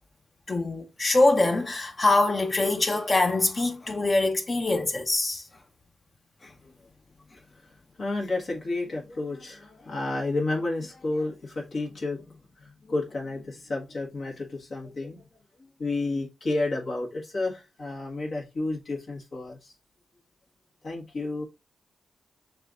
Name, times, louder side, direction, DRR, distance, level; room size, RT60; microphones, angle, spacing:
voice 1, 0.5-5.5 6.4-6.5, left 2 dB, 40° left, 0.8 m, -24 dB
voice 2, 7.5-15.3 15.6-19.7 20.8-21.5, left 2 dB, 60° left, 1.6 m, -31 dB
6.6 x 2.5 x 2.5 m
cardioid pair, 65°, 0 cm